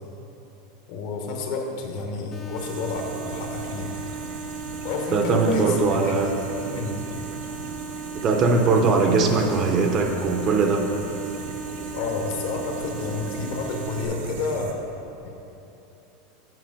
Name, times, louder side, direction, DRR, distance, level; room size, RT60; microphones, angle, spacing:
voice 1, 0.9-3.9 4.8-6.2 6.6-7.0 11.9-14.8, left 4 dB, 50° left, 2 dB, 0.9 m, -30 dB
sound 1, 2.3-14.1, right 4 dB, 20° left, 0.6 m, -37 dB
sound 2, 2.6-14.7, right 5 dB, 85° right, 0.7 m, -39 dB
voice 2, 5.1-6.3 8.1-10.8, right 4 dB, 25° right, 3 dB, 0.5 m, -20 dB
7.7 x 5.2 x 5.0 m, 2.9 s
supercardioid pair, 170°, 0 cm